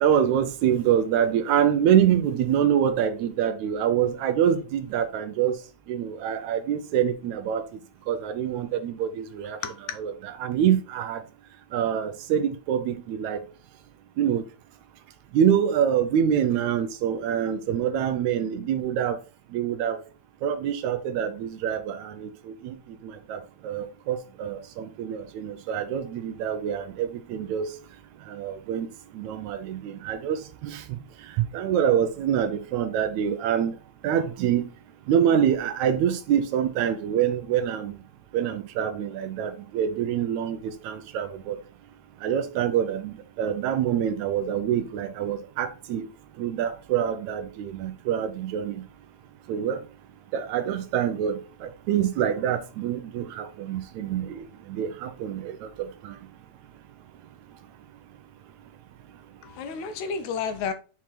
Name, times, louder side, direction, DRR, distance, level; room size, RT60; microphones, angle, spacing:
voice 1, 0.0-5.6 5.9-7.6 8.1-9.6 10.0-11.2 11.7-13.4 14.2-14.4 15.3-19.2 19.5-20.0 20.4-22.3 22.6-22.7 23.0-27.7 28.3-28.9 29.2-30.8 31.5-33.7 34.0-34.6 35.1-37.9 38.3-41.6 42.2-46.1 46.4-48.8 49.5-49.8 50.3-54.4 54.7-55.5 55.8-56.2, right 9 dB, 80° right, 1.9 m, -25 dB
voice 2, 9.6-10.0 59.4-60.7, left 6 dB, 80° left, 2.1 m, -31 dB
6.0 x 4.3 x 4.1 m
omnidirectional pair, 3.5 m